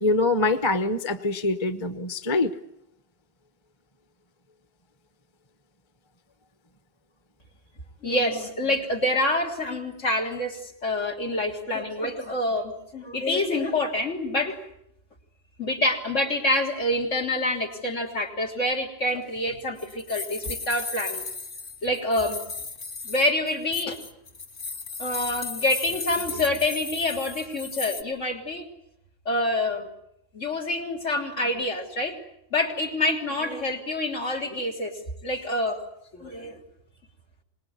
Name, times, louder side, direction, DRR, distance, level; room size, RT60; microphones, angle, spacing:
voice 1, 0.0-2.5, left 2 dB, 25° left, 10 dB, 1.1 m, -24 dB
voice 2, 8.0-14.6 15.6-21.2 21.8-22.4 23.0-24.0 25.0-28.7 29.3-29.9 30.3-32.2 32.5-34.9 35.2-35.8 36.1-36.6, left 1 dB, 80° left, 2 dB, 3.8 m, -27 dB
sound 1, 19.1-28.0, left 4 dB, 45° left, 1.6 m, -36 dB
26.0 x 20.5 x 9.6 m, 0.79 s
omnidirectional pair, 1.3 m